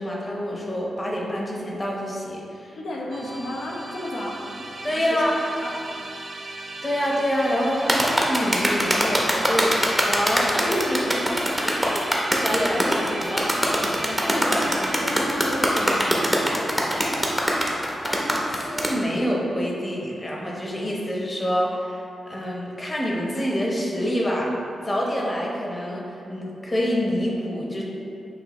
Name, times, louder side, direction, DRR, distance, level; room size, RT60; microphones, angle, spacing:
voice 1, 0.0-2.8 4.8-5.3 6.8-9.7 10.0-11.2 11.6-13.6 18.0-24.5 24.8-27.8, equal, 30° left, -3 dB, 0.9 m, -27 dB
voice 2, 2.8-4.5 5.0-5.3 5.6-6.1 14.1-17.4, left 1 dB, 75° left, -2 dB, 0.7 m, -34 dB
Musical instrument, 3.1-18.3, right 2 dB, 50° right, 0.5 m, -38 dB
sound 1, 7.9-18.9, equal, 5° right, 0.8 m, -22 dB
6.6 x 2.6 x 3.0 m, 2.7 s
cardioid pair, 70°, 0 cm